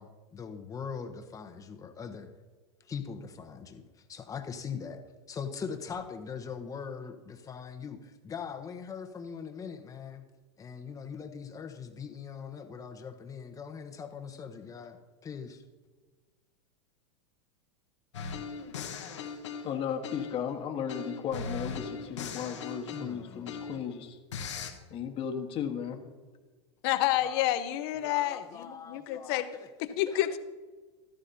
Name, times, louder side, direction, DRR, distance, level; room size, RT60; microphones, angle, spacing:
voice 1, 0.0-2.3 2.8-5.0 5.3-10.2 10.6-15.6 22.9-23.8 27.2-27.4 28.0-29.7 30.1-30.2, left 6 dB, 25° left, 6 dB, 1.1 m, -41 dB
sound 1, 18.1-20.5 20.9-23.9 24.3-24.7, left 5 dB, 85° left, 1.3 m, -39 dB
voice 2, 19.6-24.2 24.9-26.0, left 8 dB, 40° left, 3 dB, 1.5 m, -35 dB
voice 3, 26.8-29.5 29.8-30.4, left 13 dB, 60° left, 11 dB, 0.9 m, -29 dB
14.0 x 13.0 x 2.8 m, 1.4 s
hypercardioid pair, 105°, 15 cm